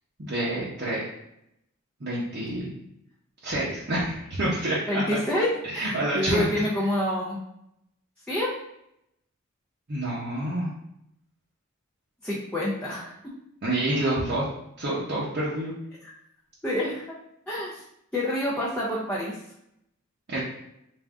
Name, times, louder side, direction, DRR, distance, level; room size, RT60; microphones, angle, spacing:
voice 1, 0.2-1.0 2.0-2.7 3.4-5.2 5.6-6.5 9.9-10.7 13.6-14.4 14.8-15.7 20.3-20.4, right 1 dB, 50° right, -8 dB, 0.8 m, -28 dB
voice 2, 4.9-7.4 8.3-8.5 12.2-13.1 16.6-17.1 17.5-17.8 18.1-19.4, left 1 dB, 5° left, -7 dB, 0.6 m, -27 dB
3.5 x 2.5 x 3.6 m, 0.78 s
head